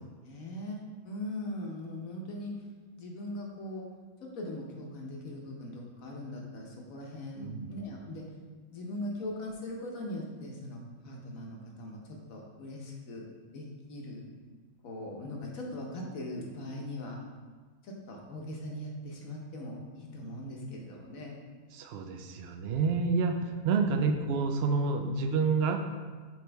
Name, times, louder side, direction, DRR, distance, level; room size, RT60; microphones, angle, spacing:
voice 1, 0.0-2.5 3.0-3.8 4.2-8.2 8.7-13.2 13.5-14.3 14.8-17.2 17.8-21.4 23.8-24.1, left 1 dB, 75° left, -1 dB, 1.4 m, -40 dB
voice 2, 7.4-7.7 8.8-8.9 21.7-25.8, right 4 dB, 65° right, 5 dB, 0.7 m, -29 dB
6.1 x 4.5 x 3.4 m, 1.5 s
omnidirectional pair, 1.5 m